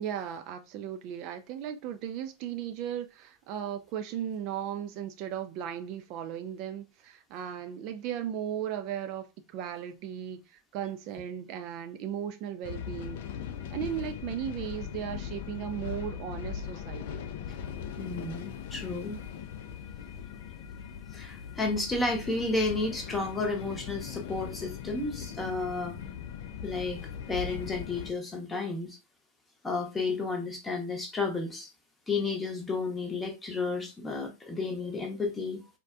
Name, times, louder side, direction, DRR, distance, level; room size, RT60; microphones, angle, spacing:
voice 1, 0.0-13.2 13.7-17.2, right 9 dB, 40° right, 0.3 m, -36 dB
sound 1, 12.6-28.1, left 8 dB, 50° left, 0.3 m, -39 dB
voice 2, 18.0-19.2 21.1-26.0 26.6-29.0 29.6-31.7 32.1-35.6, left 3 dB, 15° left, 0.8 m, -32 dB
4.1 x 2.1 x 2.4 m
figure-of-eight pair, 90°, 0 cm